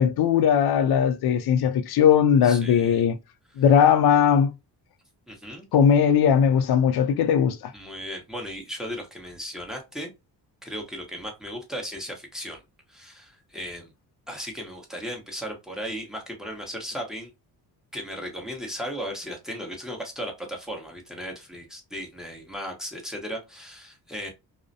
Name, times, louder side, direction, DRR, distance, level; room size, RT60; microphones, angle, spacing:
voice 1, 0.0-3.2 3.6-4.5 5.7-7.7, left 8 dB, 60° left, 0.5 m, -19 dB
voice 2, 2.4-3.0 5.3-5.7 7.7-10.1 10.6-12.6 12.9-13.9 14.3-17.3 17.9-24.3, equal, ahead, 0.9 m, -36 dB
2.3 x 2.1 x 2.6 m
cardioid pair, 65°, 43 cm